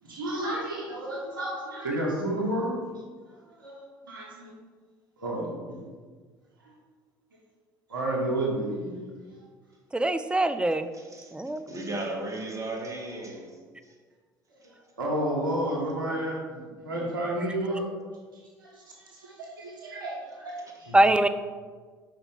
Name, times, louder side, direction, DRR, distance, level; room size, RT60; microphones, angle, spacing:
voice 1, 0.0-3.0 3.6-4.5 5.2-5.5 6.6-6.7 7.9-9.2 14.6-17.9 18.3-21.0, right 1 dB, 85° right, -3 dB, 1.4 m, -31 dB
voice 2, 9.9-10.9 11.3-11.6 20.9-21.3, right 1 dB, 10° right, 10 dB, 0.5 m, -22 dB
voice 3, 10.9-11.3 11.7-13.9, right 2 dB, 30° right, 0 dB, 1.6 m, -36 dB
5.4 x 4.5 x 5.5 m, 1.5 s
hypercardioid pair, 60°, 11 cm